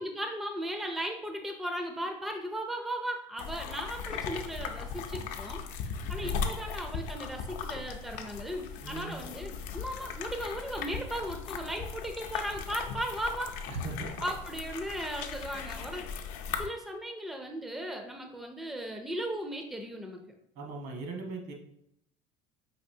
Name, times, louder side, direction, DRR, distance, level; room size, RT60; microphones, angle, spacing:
voice 1, 0.0-13.6 14.2-16.1 16.6-20.2, right 1 dB, ahead, 4 dB, 0.4 m, -37 dB
sound 1, 3.4-16.7, left 6 dB, 60° left, 0.5 m, -38 dB
voice 2, 6.0-6.5 8.8-9.1 13.7-14.1 20.5-21.5, right 3 dB, 75° right, 1 dB, 1.3 m, -39 dB
5.2 x 3.0 x 2.7 m, 0.75 s
cardioid pair, 135°, 15 cm